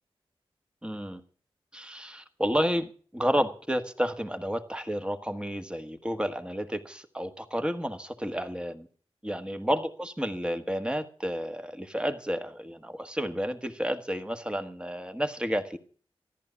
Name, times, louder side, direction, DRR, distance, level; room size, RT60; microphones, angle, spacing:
voice 1, 0.8-1.2 1.7-8.9 9.2-15.8, equal, 10° right, 1.5 m, -31 dB
14.0 x 11.0 x 7.0 m
wide cardioid pair, 70°, 10 cm